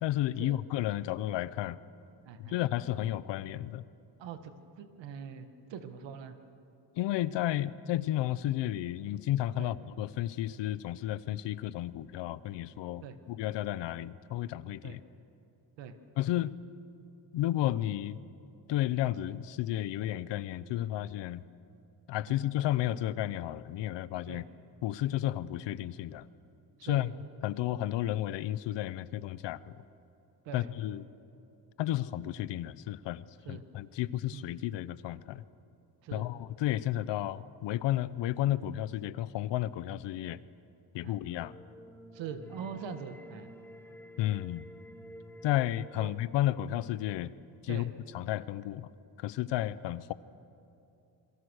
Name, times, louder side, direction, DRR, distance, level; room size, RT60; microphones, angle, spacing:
voice 1, 0.0-1.8 2.4-3.8 7.0-15.0 16.2-16.5 17.3-18.2 18.7-21.4 22.1-24.4 24.8-26.3 26.8-27.1 27.4-29.8 30.5-31.0 31.8-35.4 36.1-40.4 40.9-41.5 44.2-44.6 45.4-47.3 47.6-48.9 49.2-50.1, left 13 dB, 80° left, 17 dB, 0.8 m, -32 dB
voice 2, 2.3-2.6 4.2-6.4 9.6-9.7 13.0-13.2 14.8-15.0 15.8-16.0 22.3-22.4 24.3-24.4 26.8-27.1 30.4-30.7 33.4-33.6 34.3-34.5 36.0-36.3 41.0-41.2 42.1-43.5 45.9-46.1 47.7-47.9, right 7 dB, 85° right, 9 dB, 1.9 m, -43 dB
sound 1, 41.3-47.3, equal, 5° left, 0.9 m, -52 dB
27.5 x 22.5 x 6.5 m, 2.8 s
cardioid pair, 165°, 43 cm